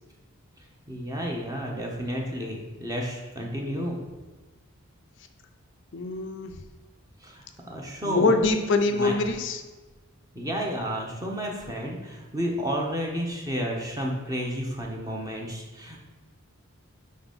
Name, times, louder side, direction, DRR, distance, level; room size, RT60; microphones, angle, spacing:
voice 1, 0.9-4.0 7.2-8.4 8.9-9.1 10.3-16.0, equal, 15° right, 0 dB, 0.8 m, -31 dB
voice 2, 5.9-6.5 8.0-9.6, left 3 dB, 55° left, 6 dB, 0.5 m, -24 dB
5.1 x 4.0 x 5.2 m, 1.3 s
head